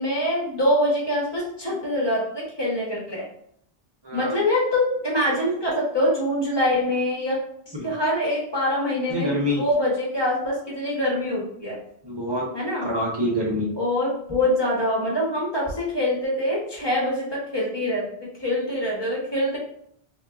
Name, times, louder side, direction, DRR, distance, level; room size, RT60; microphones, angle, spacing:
voice 1, 0.0-3.2 4.1-7.4 7.7-11.8 12.5-12.9 13.8-19.6, left 1 dB, 25° left, -4 dB, 1.0 m, -24 dB
voice 2, 4.0-4.4 7.7-7.9 9.1-9.6 12.0-12.5 12.8-13.7, left 1 dB, 30° right, -3 dB, 0.7 m, -26 dB
3.4 x 2.6 x 2.4 m, 0.69 s
omnidirectional pair, 1.0 m